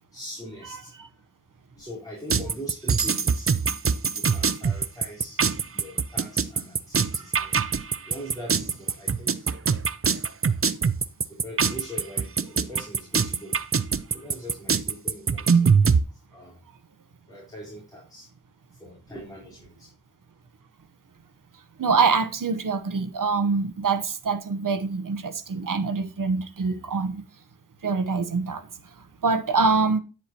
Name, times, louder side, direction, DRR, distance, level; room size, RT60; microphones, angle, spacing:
voice 1, 0.1-0.9 1.7-3.5 4.1-5.4 5.7-7.6 8.1-9.5 11.3-13.6 14.1-15.7 16.1-16.6 17.3-18.3 18.7-19.9, equal, 10° left, 4.1 m, -41 dB
sound 1, 2.3-16.0, right 5 dB, 45° right, 0.6 m, -23 dB
voice 2, 21.8-27.2 27.8-28.6 29.2-30.0, right 4 dB, 80° right, 1.0 m, -24 dB
9.8 x 7.3 x 2.9 m
wide cardioid pair, 70°, 32 cm